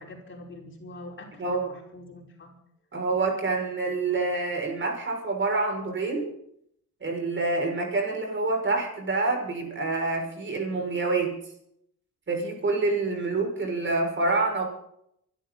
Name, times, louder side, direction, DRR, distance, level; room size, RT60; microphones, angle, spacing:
voice 1, 0.0-2.5, left 2 dB, 40° left, 0 dB, 5.1 m, -44 dB
voice 2, 2.9-6.3 7.0-11.3 12.3-14.6, right 3 dB, 40° right, 2 dB, 6.5 m, -27 dB
26.0 x 12.5 x 4.2 m, 0.73 s
cardioid pair, 90°, 30 cm